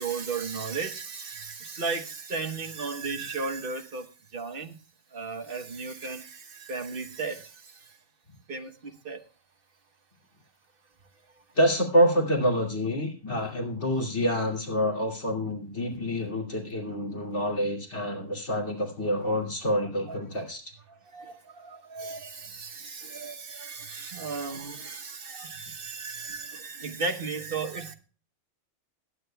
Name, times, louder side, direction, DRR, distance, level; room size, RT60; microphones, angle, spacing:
voice 1, 0.0-4.8 5.1-8.0 8.5-9.2 19.2-19.3 20.1-20.2 20.9-27.9, right 4 dB, 50° right, 1.3 m, -35 dB
voice 2, 11.6-20.6, equal, 70° left, 3.0 m, -27 dB
20.5 x 9.6 x 2.2 m
omnidirectional pair, 1.2 m